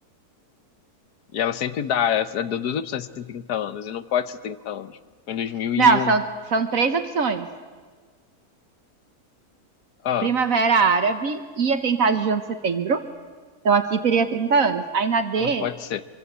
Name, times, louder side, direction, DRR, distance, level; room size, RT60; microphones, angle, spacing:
voice 1, 1.3-5.0 5.3-6.1 10.0-10.3 15.4-16.0, left 9 dB, 85° left, 13 dB, 1.5 m, -26 dB
voice 2, 5.8-7.5 10.2-13.0 13.6-15.6, right 5 dB, 60° right, 9 dB, 1.4 m, -21 dB
25.5 x 24.0 x 8.1 m, 1.5 s
omnidirectional pair, 1.6 m